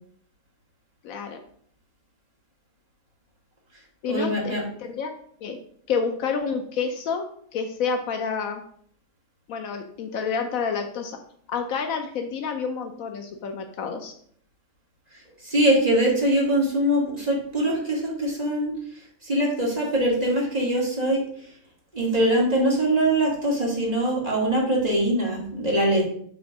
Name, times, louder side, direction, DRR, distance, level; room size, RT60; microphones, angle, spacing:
voice 1, 1.0-1.4 4.0-5.1 5.4-5.6 5.9-7.2 7.5-8.6 9.5-11.2 11.5-14.1, left 5 dB, 80° left, 5 dB, 1.1 m, -29 dB
voice 2, 4.0-4.6 15.1-21.5 21.9-26.1, right 1 dB, 30° right, -3 dB, 2.1 m, -23 dB
6.2 x 3.7 x 6.0 m, 0.62 s
omnidirectional pair, 1.4 m